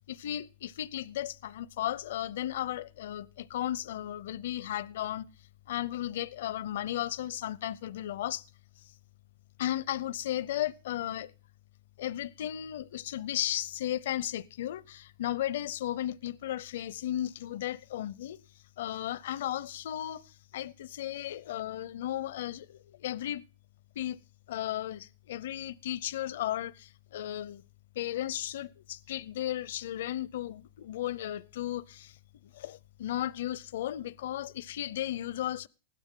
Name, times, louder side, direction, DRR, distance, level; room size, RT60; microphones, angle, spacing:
voice 1, 0.1-5.3 5.7-8.4 9.6-11.3 12.0-18.4 18.8-23.4 24.0-24.2 24.5-27.6 28.0-32.2 32.5-35.7, left 12 dB, 75° left, 0.6 m, -35 dB
15.0 x 12.0 x 3.7 m
hypercardioid pair, 125°, 0 cm